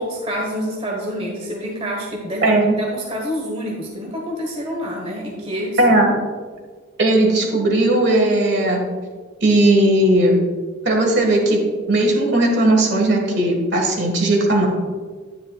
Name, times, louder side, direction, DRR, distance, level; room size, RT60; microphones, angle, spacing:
voice 1, 0.0-6.0, equal, 30° right, -1 dB, 1.2 m, -27 dB
voice 2, 2.4-2.7 5.8-6.1 7.0-8.9 9.4-10.4 10.8-11.6 11.9-14.7, right 1 dB, 55° right, 1 dB, 1.6 m, -17 dB
9.8 x 9.6 x 2.3 m, 1.5 s
head